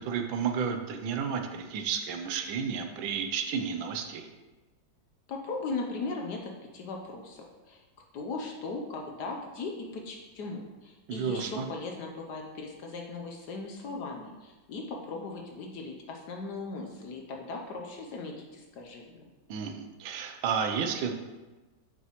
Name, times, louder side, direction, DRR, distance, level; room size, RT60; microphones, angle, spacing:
voice 1, 0.0-4.3 11.1-11.7 19.5-21.1, right 6 dB, 80° right, 5 dB, 1.4 m, -32 dB
voice 2, 5.3-7.8 8.1-19.3, left 3 dB, 65° left, 1 dB, 1.2 m, -38 dB
8.2 x 5.6 x 3.0 m, 1.2 s
omnidirectional pair, 2.2 m